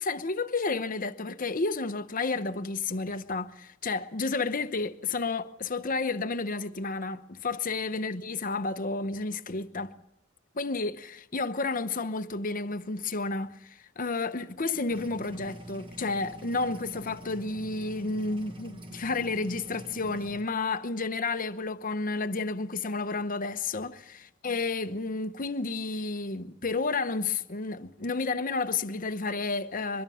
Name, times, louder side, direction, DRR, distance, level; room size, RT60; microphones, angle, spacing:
voice 1, 0.0-9.9 10.5-24.2 24.4-30.0, left 3 dB, 45° left, 1.0 m, -31 dB
sound 1, 14.9-20.4, equal, 25° right, 1.7 m, -45 dB
23.5 x 22.0 x 5.7 m
head